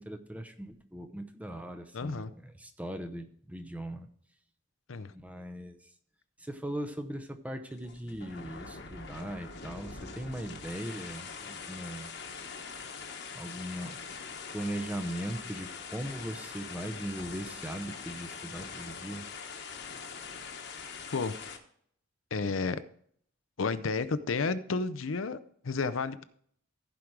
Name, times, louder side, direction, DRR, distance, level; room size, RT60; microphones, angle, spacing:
voice 1, 0.0-4.1 5.1-5.8 6.4-12.1 13.3-14.0 14.5-19.2, right 1 dB, 5° right, 6 dB, 0.8 m, -39 dB
voice 2, 1.9-2.3 4.9-5.1 21.1-21.3 22.3-22.8 23.6-25.4 25.6-26.2, left 4 dB, 90° left, 13 dB, 0.6 m, -31 dB
sound 1, 7.7-21.6, left 5 dB, 60° left, 1.2 m, -43 dB
15.0 x 5.1 x 4.6 m, 0.62 s
head